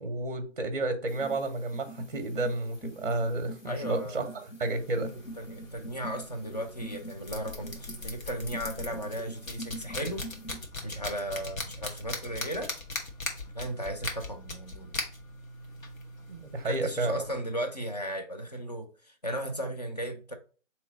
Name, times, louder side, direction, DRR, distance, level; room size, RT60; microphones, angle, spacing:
voice 1, 0.0-5.1 16.3-17.2, right 2 dB, 40° right, 0.6 m, -31 dB
sound 1, 1.1-10.6, right 1 dB, 65° left, 1.4 m, -45 dB
voice 2, 3.6-4.4 5.4-10.3 10.8-12.7 13.5-15.0 16.6-20.3, equal, 35° left, 0.5 m, -36 dB
sound 2, 4.8-17.4, left 2 dB, 85° left, 1.2 m, -40 dB
3.8 x 3.0 x 3.8 m
hypercardioid pair, 160°, 39 cm